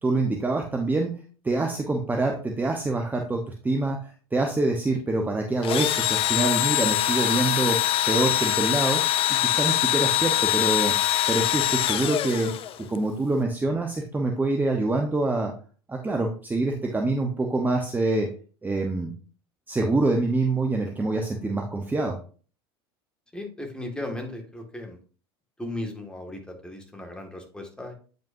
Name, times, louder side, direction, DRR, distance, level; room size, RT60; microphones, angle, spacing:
voice 1, 0.0-1.1 1.4-7.8 8.1-9.0 9.4-10.9 11.3-12.5 12.9-15.5 15.9-18.3 18.6-19.1 19.7-22.2, right 2 dB, 15° right, 2 dB, 1.0 m, -25 dB
Engine / Drill, 5.6-13.0, left 13 dB, 45° left, 0.6 m, -24 dB
voice 2, 23.3-25.0 25.6-27.9, left 1 dB, 5° left, 2 dB, 2.0 m, -36 dB
9.1 x 5.3 x 2.7 m, 0.39 s
hypercardioid pair, 95°, 13 cm